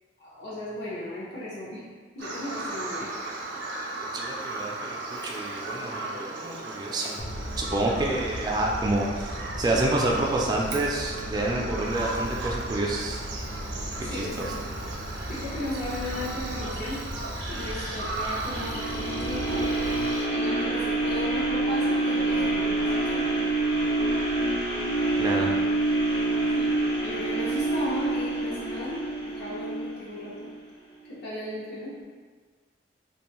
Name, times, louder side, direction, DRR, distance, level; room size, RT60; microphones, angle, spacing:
voice 1, 0.2-1.8 2.1-3.1 14.0-14.7 15.3-17.0 17.5-19.7 20.3-23.2 26.5-26.8 27.0-30.5 31.1-31.9, left 1 dB, 65° left, -8 dB, 0.7 m, -36 dB
Bird vocalization bird call bird song, 2.2-20.3, right 2 dB, 85° right, 0.5 m, -36 dB
voice 2, 4.1-7.3 7.6-13.2 14.0-14.5 25.2-25.5, right 2 dB, 25° right, -2 dB, 0.3 m, -28 dB
Mechanical fan, 7.2-19.9, equal, 30° left, 0.5 m, -37 dB
sound 1, 18.4-30.5 31.0-31.1, right 2 dB, 85° left, 1.2 m, -27 dB
2.5 x 2.3 x 2.9 m, 1.5 s
head